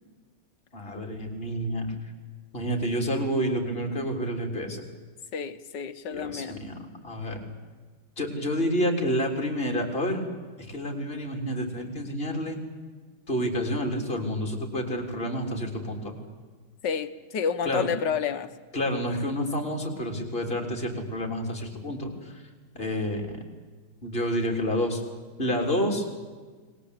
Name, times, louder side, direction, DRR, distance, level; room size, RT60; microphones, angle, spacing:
voice 1, 0.7-1.9 2.5-4.9 6.1-7.4 8.2-10.2 10.6-12.6 13.3-16.1 17.7-17.9 18.7-22.4 22.7-23.4 24.0-25.0 25.4-26.1, equal, 25° left, 2 dB, 3.8 m, -29 dB
voice 2, 5.3-6.6 16.8-18.5, left 7 dB, 65° left, 11 dB, 1.6 m, -30 dB
30.0 x 21.0 x 8.4 m, 1.4 s
omnidirectional pair, 2.2 m